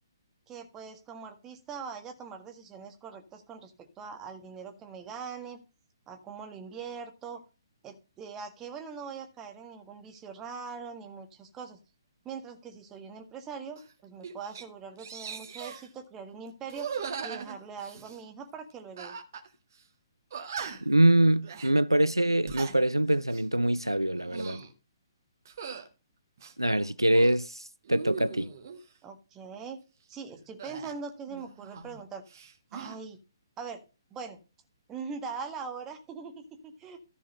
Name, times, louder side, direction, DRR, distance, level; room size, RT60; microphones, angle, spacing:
voice 1, 0.5-5.6 6.1-7.4 7.8-11.8 12.2-16.9 17.2-19.2 29.0-29.8 30.1-33.2 33.6-33.8 34.1-34.4 34.9-37.0, right 5 dB, 15° right, 1.7 m, -42 dB
sound 1, 13.8-13.9 14.2-14.6 15.0-15.9 16.7-18.2 19.0-19.5 19.7-19.8 20.3-21.0 21.4-21.7 22.3-22.8 23.2-23.5 24.1-24.7 25.5-25.9 26.4-27.3 27.8-28.8 30.6-32.0 32.3-33.0, right 6 dB, 45° right, 1.9 m, -40 dB
voice 2, 20.9-24.6 26.6-27.6 27.9-28.5, right 1 dB, 90° right, 0.4 m, -24 dB
14.0 x 4.8 x 5.4 m
figure-of-eight pair, 130°, 2 cm